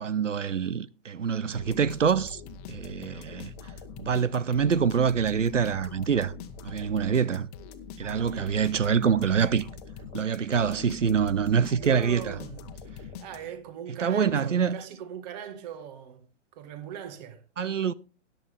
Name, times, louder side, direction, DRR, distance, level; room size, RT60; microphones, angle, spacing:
voice 1, 0.0-2.4 2.7-3.5 4.0-6.3 6.6-7.5 8.0-9.7 10.1-12.3 14.0-14.8 17.6-17.9, right 7 dB, 80° right, 0.7 m, -25 dB
sound 1, 1.5-13.7, left 5 dB, 30° left, 1.2 m, -43 dB
voice 2, 8.0-8.6 11.7-12.7 13.1-17.4, right 9 dB, 35° right, 1.8 m, -40 dB
13.5 x 10.0 x 3.5 m
figure-of-eight pair, 120°, 37 cm